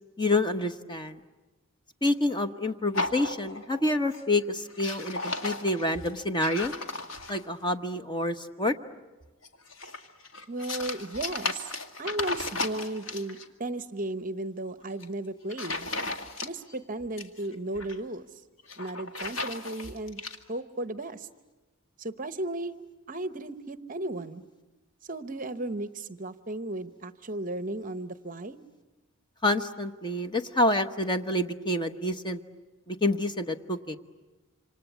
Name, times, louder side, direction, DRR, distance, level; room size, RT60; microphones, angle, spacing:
voice 1, 0.2-1.2 2.0-6.7 7.3-8.7 29.4-32.4 32.9-34.0, left 1 dB, 20° left, 8 dB, 1.0 m, -28 dB
sound 1, 2.9-3.8 4.1-4.4 4.7-7.6 9.4-13.5 14.8-15.1 15.5-16.8 17.0-18.0 18.6-20.4, left 2 dB, 60° left, 2.0 m, -35 dB
voice 2, 10.5-11.7 12.0-15.9 16.4-18.3 18.8-20.2 20.5-21.3 22.0-22.8 23.1-24.4 25.0-28.6, right 2 dB, 35° right, 11 dB, 0.9 m, -35 dB
27.5 x 26.5 x 8.3 m, 1.2 s
head